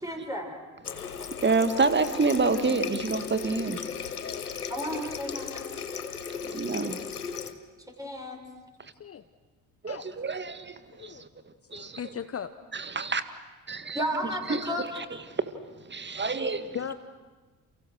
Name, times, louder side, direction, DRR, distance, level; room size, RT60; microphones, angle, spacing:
voice 1, 0.0-0.5 4.7-5.7 8.0-8.4 13.9-14.9, equal, 10° right, 1 dB, 6.0 m, -32 dB
Water tap faucet, 0.8-7.5, left 6 dB, 85° left, 0.9 m, -36 dB
voice 2, 1.3-3.8 6.4-7.0 8.8-8.9 9.8-11.3 11.7-12.0 12.7-13.2 13.7-14.0 14.5-16.8, right 4 dB, 25° right, 11 dB, 1.8 m, -28 dB
voice 3, 10.9-11.2 11.7-12.5 16.7-16.9, left 8 dB, 30° left, 12 dB, 1.0 m, -37 dB
29.5 x 29.0 x 6.5 m, 1.3 s
figure-of-eight pair, 45°, 44 cm